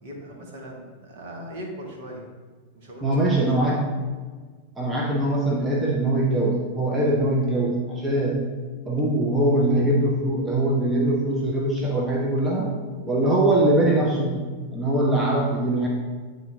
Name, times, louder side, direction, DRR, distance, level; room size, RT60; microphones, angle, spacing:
voice 1, 0.0-2.2 2.7-3.7, equal, 50° right, 0 dB, 1.6 m, -39 dB
voice 2, 3.0-3.8 4.8-8.4 8.9-12.7 13.0-14.5 14.7-15.9, right 1 dB, 15° right, -2 dB, 0.9 m, -22 dB
8.9 x 3.9 x 3.6 m, 1.5 s
figure-of-eight pair, 90°, 0 cm